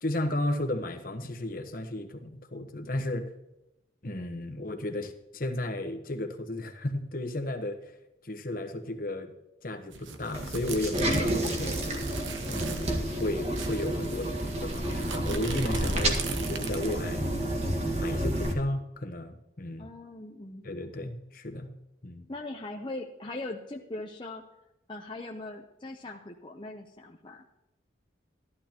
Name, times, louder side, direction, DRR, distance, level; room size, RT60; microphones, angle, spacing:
voice 1, 0.0-3.3 4.0-7.8 8.2-9.3 9.6-11.8 12.5-17.2 18.0-19.9 20.6-21.7 22.0-22.3, left 1 dB, 45° left, 6 dB, 1.2 m, -34 dB
sound 1, 9.9-12.9 13.2-13.3 13.5-17.1, right 4 dB, 85° right, 1.1 m, -38 dB
sound 2, 10.3-18.5, right 1 dB, 35° right, 1.7 m, -30 dB
voice 2, 19.8-20.6 22.3-24.4 24.9-27.4, left 2 dB, 25° left, 0 dB, 0.7 m, -40 dB
14.0 x 11.5 x 3.0 m, 0.90 s
head